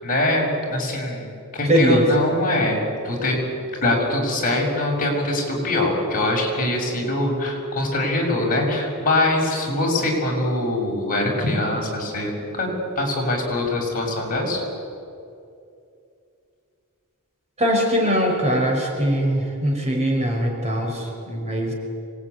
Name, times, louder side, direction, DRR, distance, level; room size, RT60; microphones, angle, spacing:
voice 1, 0.0-3.4 3.8-14.6, left 1 dB, 40° left, -1 dB, 6.6 m, -23 dB
voice 2, 1.7-2.1 17.6-21.7, equal, 30° right, 0 dB, 5.4 m, -21 dB
26.0 x 20.5 x 9.6 m, 2.5 s
head